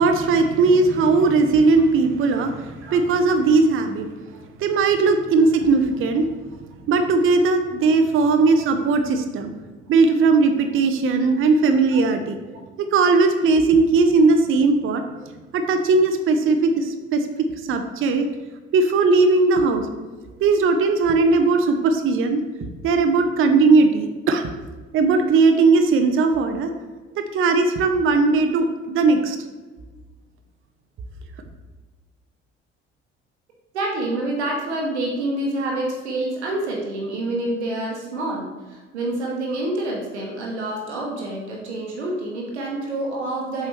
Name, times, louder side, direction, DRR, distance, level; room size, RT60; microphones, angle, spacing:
voice 1, 0.0-4.1 4.6-6.3 6.9-9.5 9.9-12.4 12.8-15.0 15.5-18.3 18.7-19.9 20.4-24.5 24.9-26.7 27.2-29.4, right 3 dB, 40° right, 6 dB, 0.7 m, -18 dB
voice 2, 33.7-43.7, right 2 dB, 75° right, -2 dB, 1.1 m, -27 dB
7.3 x 4.8 x 3.1 m, 1.3 s
figure-of-eight pair, 50°, 34 cm